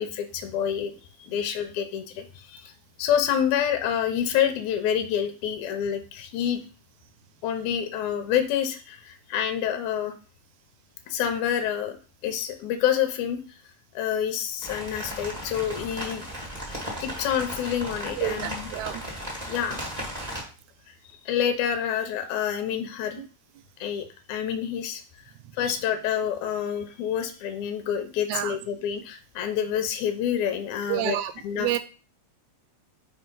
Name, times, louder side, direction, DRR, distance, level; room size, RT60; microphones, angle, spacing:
voice 1, 0.0-2.7 3.0-6.6 7.4-10.1 11.1-12.0 12.2-13.4 13.9-16.3 17.0-18.7 19.5-19.9 21.3-23.2 23.8-25.0 25.6-31.2 31.4-31.8, left 9 dB, 80° left, 8 dB, 2.2 m, -27 dB
sound 1, 14.6-20.4, equal, 15° right, 1.6 m, -36 dB
voice 2, 18.2-19.0 23.2-23.3 28.3-28.6 30.9-31.8, right 15 dB, 80° right, 10 dB, 1.9 m, -29 dB
5.1 x 4.5 x 5.3 m, 0.35 s
omnidirectional pair, 3.4 m